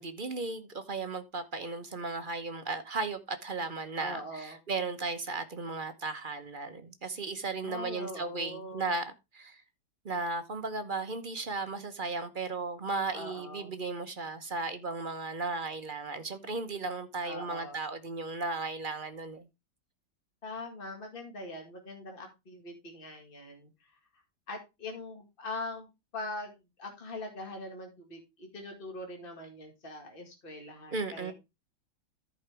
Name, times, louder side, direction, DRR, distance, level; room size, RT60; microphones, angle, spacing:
voice 1, 0.0-9.0 9.3-9.6 10.0-19.5 30.9-31.3, right 3 dB, 40° right, 0.8 m, -35 dB
voice 2, 3.9-4.6 7.6-9.0 13.1-13.8 17.2-17.8 20.4-24.2 24.5-31.3, left 2 dB, 30° left, 2.1 m, -42 dB
14.0 x 5.1 x 3.4 m
omnidirectional pair, 1.8 m